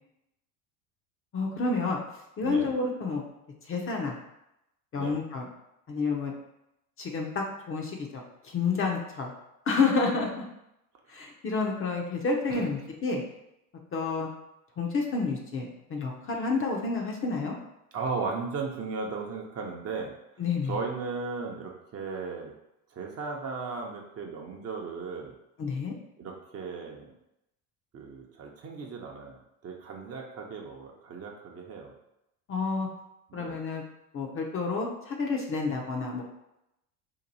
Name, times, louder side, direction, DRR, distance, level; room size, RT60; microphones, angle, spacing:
voice 1, 1.3-2.0 2.4-3.2 3.6-4.2 4.9-5.5 5.9-6.3 7.0-9.3 9.7-10.5 11.1-13.2 13.9-14.3 14.8-17.6 20.4-20.8 25.6-25.9 32.5-32.9 33.3-33.8 34.1-36.2, left 4 dB, 30° left, 0 dB, 0.7 m, -29 dB
voice 2, 2.4-2.7 5.0-5.2 11.1-11.2 12.5-12.7 17.9-20.1 20.7-22.5 22.9-25.4 26.2-27.1 27.9-31.9 33.3-33.6, right 4 dB, 35° right, 0 dB, 0.7 m, -36 dB
2.9 x 2.6 x 4.0 m, 0.86 s
hypercardioid pair, 75°, 44 cm